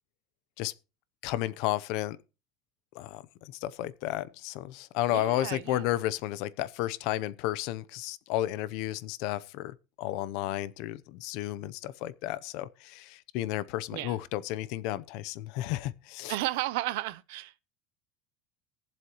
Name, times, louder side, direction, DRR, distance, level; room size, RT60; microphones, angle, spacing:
voice 1, 1.2-2.2 2.9-16.3, left 14 dB, 65° left, 0.7 m, -32 dB
voice 2, 5.1-5.8 13.9-14.1 16.3-17.6, right 17 dB, 80° right, 0.7 m, -33 dB
21.0 x 7.5 x 3.0 m
cardioid pair, 155°, 0 cm